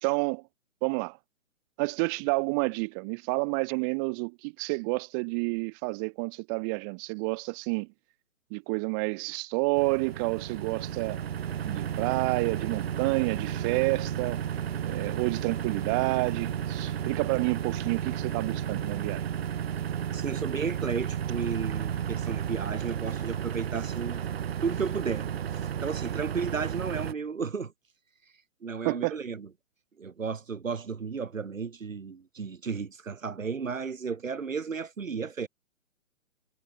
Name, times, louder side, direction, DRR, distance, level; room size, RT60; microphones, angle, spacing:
voice 1, 0.0-0.4 0.8-1.2 1.8-7.9 8.5-11.2 11.7-14.4 14.8-19.2 28.8-29.2, right 36 dB, 15° right, 0.8 m, -29 dB
sound 1, 9.8-27.1, right 9 dB, 50° right, 0.9 m, -33 dB
voice 2, 20.1-24.2 24.6-27.7 28.6-29.5 30.0-35.5, right 5 dB, 75° right, 3.1 m, -34 dB
figure-of-eight pair, 140°, 39 cm